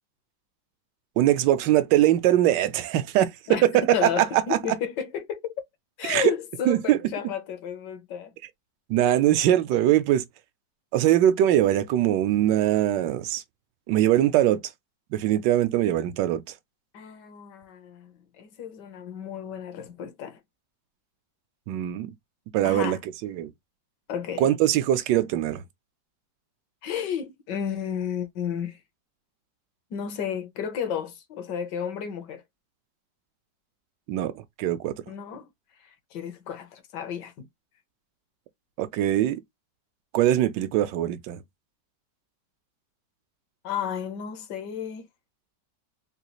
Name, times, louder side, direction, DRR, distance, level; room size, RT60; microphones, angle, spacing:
voice 1, 1.2-3.3 3.6-4.2 4.5-4.6 6.0-6.3 6.7-7.0 8.9-10.2 10.9-13.4 13.9-14.6 15.1-16.4 21.7-22.1 22.5-23.0 23.2-23.5 24.4-25.6 34.1-34.3 34.6-34.9 38.8-39.4 40.1-41.4, right 12 dB, 80° right, 1.2 m, -22 dB
voice 2, 3.9-5.5 6.0-8.3 16.9-20.4 22.6-23.0 24.1-24.5 26.8-28.8 29.9-32.4 35.1-35.5 35.8-37.5 43.6-45.1, left 8 dB, 75° left, 1.4 m, -32 dB
3.9 x 2.3 x 2.9 m
omnidirectional pair, 1.9 m